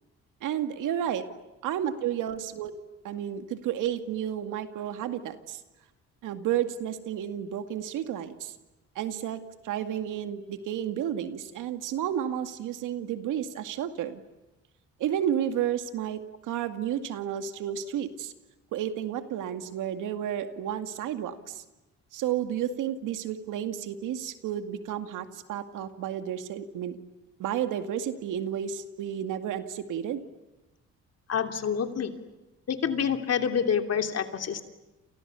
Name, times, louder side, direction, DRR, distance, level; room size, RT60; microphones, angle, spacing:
voice 1, 0.4-1.2 1.6-2.8 3.0-5.6 6.2-8.5 9.0-14.2 15.0-18.3 18.7-21.6 22.1-27.0 27.4-30.2, right 10 dB, 85° right, 8 dB, 2.2 m, -31 dB
voice 2, 31.3-32.1 32.7-34.6, left 7 dB, 55° left, 6 dB, 3.1 m, -27 dB
29.0 x 29.0 x 7.0 m, 1.0 s
cardioid pair, 90°, 30 cm